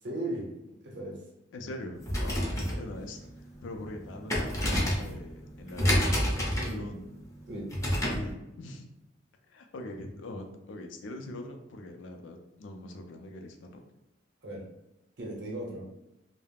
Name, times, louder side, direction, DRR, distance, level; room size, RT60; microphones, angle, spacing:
voice 1, 0.0-0.5 0.8-1.2 2.3-2.5 6.3-6.8 7.5-7.7 14.4-14.7 15.2-15.9, right 1 dB, 60° right, -1 dB, 0.7 m, -37 dB
voice 2, 1.5-3.2 3.6-7.1 8.1-8.9 9.5-13.8, left 1 dB, 70° left, 5 dB, 0.4 m, -42 dB
sound 1, 1.9-8.3, equal, 15° left, 0.5 m, -30 dB
2.3 x 2.0 x 3.3 m, 0.90 s
head